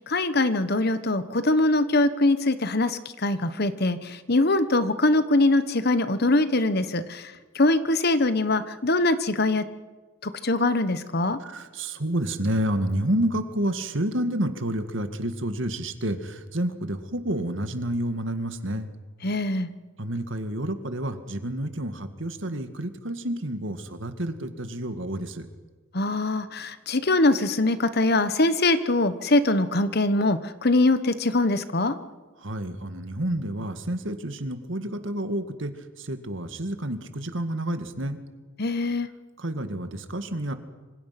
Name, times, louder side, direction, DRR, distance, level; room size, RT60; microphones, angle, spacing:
voice 1, 0.1-7.2 7.5-9.6 10.2-11.4 19.2-19.7 25.9-31.9 38.6-39.1, left 2 dB, 50° left, 12 dB, 1.2 m, -23 dB
voice 2, 11.4-18.9 20.0-25.5 32.4-38.2 39.4-40.5, right 1 dB, 65° right, 8 dB, 2.0 m, -29 dB
26.5 x 25.5 x 6.0 m, 1.3 s
head